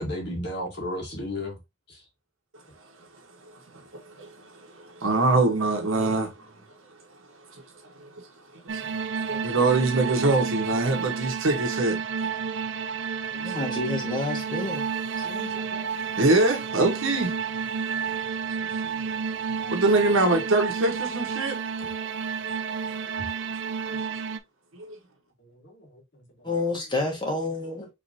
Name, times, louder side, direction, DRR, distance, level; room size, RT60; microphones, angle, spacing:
voice 1, 0.0-1.6 1.9-2.0 14.6-14.7 23.2-23.3 25.4-26.5, left 1 dB, 50° left, 1.7 m, -34 dB
voice 2, 3.9-6.3 7.9-8.1 8.6-8.9 9.3-12.0 13.5-13.6 15.2-17.3 19.0-19.1 19.6-21.9 24.7-24.9, right 2 dB, 75° right, 1.4 m, -24 dB
sound 1, 8.7-24.4, right 6 dB, 55° right, 0.4 m, -31 dB
voice 3, 13.3-14.8 15.2-15.5 26.4-27.9, left 2 dB, 20° left, 1.4 m, -29 dB
5.0 x 3.2 x 2.8 m
head